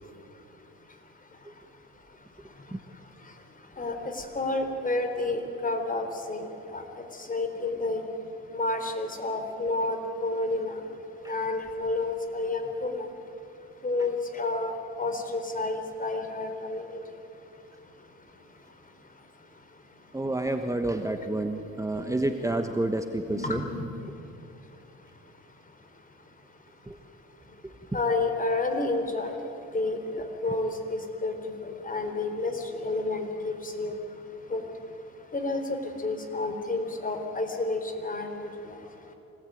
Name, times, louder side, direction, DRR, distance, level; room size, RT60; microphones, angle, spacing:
voice 1, 4.4-6.5 6.7-6.8 7.3-8.0 8.5-10.8 11.3-13.1 13.8-17.0 23.3-23.8 27.9-29.3 29.7-31.3 31.6-32.5 32.8-33.9 34.5-34.6 35.3-35.6 36.0-38.5, left 2 dB, 25° left, 5 dB, 3.9 m, -30 dB
voice 2, 20.1-23.6 26.9-27.0, right 1 dB, 10° right, 5 dB, 1.3 m, -29 dB
25.5 x 18.5 x 9.3 m, 2.9 s
cardioid pair, 90°, 30 cm